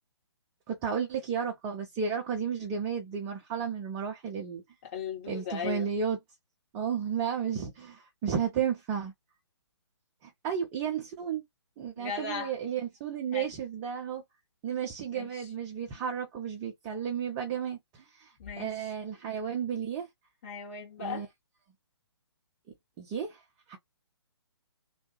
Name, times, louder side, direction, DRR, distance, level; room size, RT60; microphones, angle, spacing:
voice 1, 0.7-4.6 5.3-6.2 6.7-9.1 10.2-11.4 11.8-14.2 14.6-20.1 21.0-21.3 23.0-23.4 23.7-23.8, right 7 dB, 20° right, 0.8 m, -33 dB
voice 2, 4.8-5.9 12.0-12.5 13.3-13.5 15.1-15.5 18.4-18.9 20.4-21.3, left 6 dB, 35° left, 2.1 m, -37 dB
3.2 x 2.6 x 3.1 m
figure-of-eight pair, 135°, 14 cm